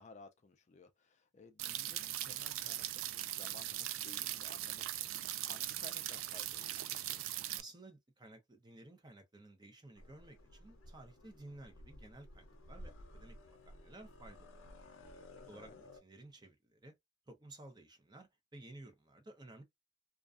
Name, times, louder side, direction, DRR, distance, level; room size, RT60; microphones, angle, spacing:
voice 1, 0.0-7.2 15.3-15.8, left 4 dB, 35° left, 0.4 m, -58 dB
sound 1, 1.6-7.6, right 13 dB, 85° right, 0.3 m, -40 dB
voice 2, 7.5-14.6 15.4-15.7 16.0-16.9 17.3-19.6, right 2 dB, 20° right, 0.6 m, -55 dB
sound 2, 10.0-16.0, left 1 dB, 85° left, 0.6 m, -55 dB
2.4 x 2.2 x 2.4 m
head